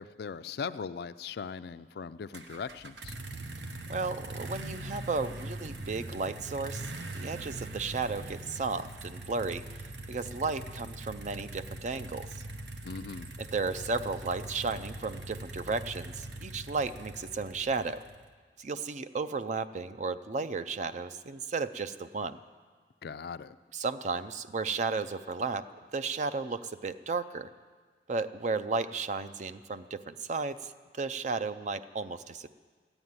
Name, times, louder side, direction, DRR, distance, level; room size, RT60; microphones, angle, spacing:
voice 1, 0.0-3.1 12.8-13.3 23.0-23.6, left 5 dB, 60° left, 14 dB, 0.4 m, -39 dB
sound 1, 2.3-18.3, right 2 dB, 80° right, 1.0 m, -42 dB
voice 2, 3.9-9.6 10.1-12.4 13.4-18.0 18.6-22.4 23.7-25.7 25.9-27.5 28.1-32.5, right 4 dB, 40° right, 12 dB, 0.5 m, -34 dB
13.5 x 9.0 x 9.5 m, 1.5 s
head